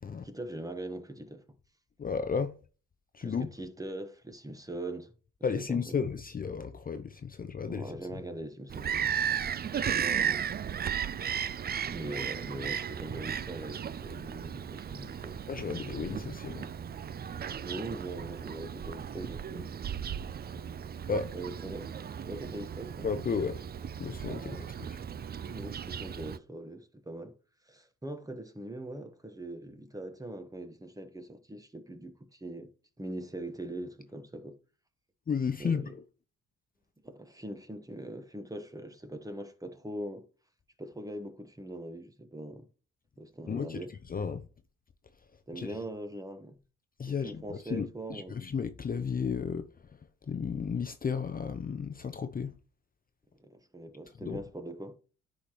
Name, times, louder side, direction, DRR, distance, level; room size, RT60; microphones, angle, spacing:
voice 1, 0.2-1.4 3.2-5.1 5.4-6.0 7.7-9.2 9.8-10.4 11.9-16.0 17.6-19.7 21.3-21.9 22.2-23.1 24.4-24.7 25.5-27.4 27.7-32.7 33.0-34.6 35.6-35.9 37.0-40.3 40.8-42.7 43.2-43.9 45.5-46.6 47.0-48.4 53.4-55.0, right 1 dB, 10° right, 1.2 m, -42 dB
voice 2, 2.0-2.5 3.1-3.5 5.4-7.9 15.5-16.7 21.1-21.3 23.0-23.6 24.0-24.6 24.9-25.0 35.3-35.8 43.5-43.8 44.1-44.4 45.5-45.7 47.0-49.6 50.3-52.5 54.2-54.4, left 6 dB, 30° left, 0.6 m, -33 dB
Bird vocalization bird call bird song, 8.7-26.4, right 8 dB, 35° right, 0.4 m, -35 dB
9.9 x 5.0 x 3.0 m
cardioid pair, 90°, 30 cm